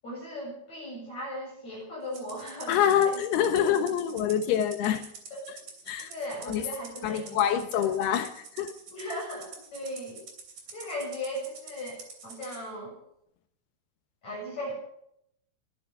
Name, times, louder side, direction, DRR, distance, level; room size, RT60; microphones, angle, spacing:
voice 1, 0.0-2.8 3.0-3.2 3.6-3.7 5.3-5.4 6.0-7.4 7.7-7.9 8.9-10.2 10.7-13.0 14.2-14.7, left 1 dB, 40° left, -4 dB, 9.1 m, -37 dB
Rattle (instrument), 2.1-12.6, right 5 dB, 50° right, 4.3 m, -46 dB
voice 2, 2.7-5.0 5.5-5.6 5.9-6.1 6.5-6.6 7.0-8.7, left 9 dB, 75° left, 8 dB, 3.1 m, -26 dB
23.0 x 10.5 x 5.7 m, 0.73 s
omnidirectional pair, 4.8 m